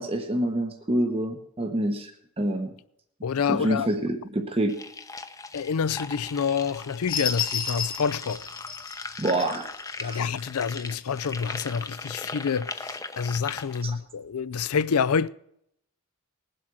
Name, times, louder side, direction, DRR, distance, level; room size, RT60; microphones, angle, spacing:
voice 1, 0.0-2.1 2.4-2.7 3.5-4.8 9.2-9.7 10.0-10.2 13.8-13.9, right 1 dB, 25° right, 1.0 m, -27 dB
voice 2, 3.2-3.9 5.5-8.4 10.0-15.3, left 6 dB, 80° left, 0.5 m, -27 dB
sound 1, 4.7-13.8, left 3 dB, 15° left, 0.7 m, -39 dB
sound 2, 7.1-11.0 11.6-11.7, left 7 dB, 40° left, 0.9 m, -32 dB
20.0 x 7.9 x 6.2 m
head